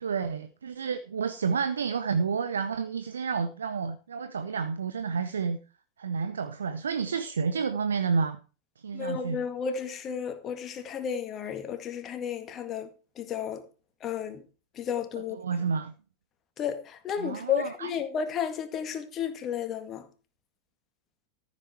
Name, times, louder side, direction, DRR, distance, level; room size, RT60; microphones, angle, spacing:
voice 1, 0.0-5.6 6.0-8.4 8.8-9.4 15.3-15.9 17.2-17.9, right 5 dB, 70° right, 0.8 m, -30 dB
voice 2, 8.9-12.9 13.2-13.6 14.0-14.4 14.8-15.4 16.6-20.1, left 8 dB, 30° left, 1.9 m, -32 dB
13.5 x 7.4 x 4.7 m
figure-of-eight pair, 90°, 0 cm